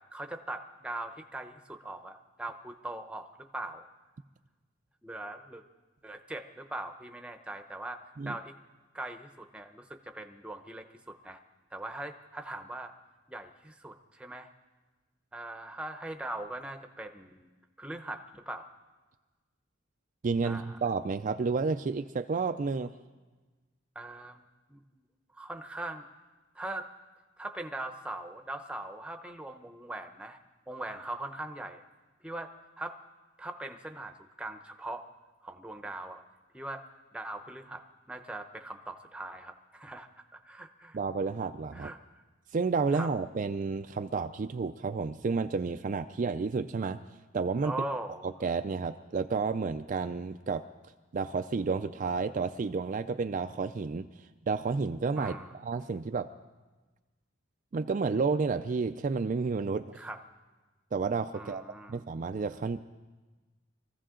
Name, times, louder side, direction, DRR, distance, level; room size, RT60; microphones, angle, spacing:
voice 1, 0.0-3.3 3.5-3.9 5.0-5.6 6.0-8.0 8.2-8.5 8.9-11.4 11.7-12.9 13.3-14.5 15.3-17.5 17.8-18.7 20.4-20.8 23.9-25.0 25.3-26.1 26.5-26.9 27.4-30.4 30.7-31.8 32.2-33.0 33.4-35.0 35.4-36.2 36.5-36.8 37.1-41.0 41.7-42.0 42.9-43.1 47.6-48.3 55.2-55.5 60.0-60.2 61.3-62.0, right 1 dB, 5° right, 5 dB, 0.8 m, -41 dB
voice 2, 20.2-22.9 40.9-41.9 42.5-47.0 47.3-47.7 48.2-50.6 51.1-55.3 55.6-56.3 57.7-59.9 60.9-61.6 61.9-62.8, right 4 dB, 40° right, 8 dB, 0.4 m, -31 dB
24.0 x 15.0 x 3.8 m, 1.2 s
head